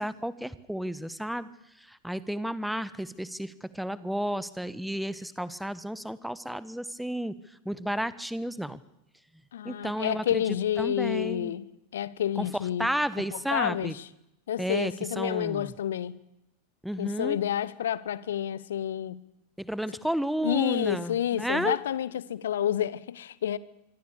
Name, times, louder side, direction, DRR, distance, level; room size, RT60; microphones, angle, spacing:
voice 1, 0.0-1.5 1.8-7.3 7.6-8.8 9.6-10.4 10.8-11.5 12.4-13.9 14.6-15.7 16.8-17.4 19.6-21.8, equal, ahead, 1.3 m, -32 dB
voice 2, 9.5-12.9 13.3-13.9 14.5-16.2 17.0-19.2 20.4-23.6, left 10 dB, 60° left, 1.0 m, -29 dB
25.5 x 24.5 x 6.8 m
figure-of-eight pair, 90°, 0 cm